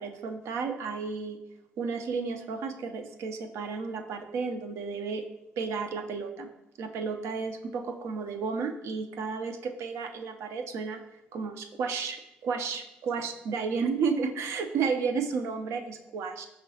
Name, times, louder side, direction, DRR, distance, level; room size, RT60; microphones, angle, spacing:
voice 1, 0.0-1.4 1.8-5.2 5.6-6.5 6.8-11.0 11.3-16.5, right 5 dB, 70° right, 6 dB, 0.4 m, -32 dB
5.5 x 3.0 x 2.7 m, 0.90 s
supercardioid pair, 60°, 5 cm